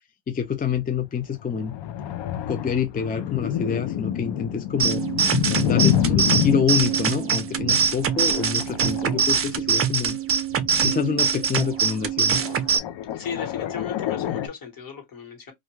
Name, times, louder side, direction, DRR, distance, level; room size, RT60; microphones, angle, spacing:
voice 1, 0.3-1.8 2.5-5.0 5.6-10.2 10.8-12.3, left 7 dB, 20° left, 0.4 m, -27 dB
sound 1, 1.4-9.7 10.5-11.9 12.3-14.5, left 10 dB, 70° left, 0.5 m, -28 dB
sound 2, 4.8-12.8, right 7 dB, 30° right, 0.5 m, -23 dB
voice 2, 13.1-15.5, left 7 dB, 50° left, 1.4 m, -35 dB
2.5 x 2.2 x 3.1 m
cardioid pair, 95°, 44 cm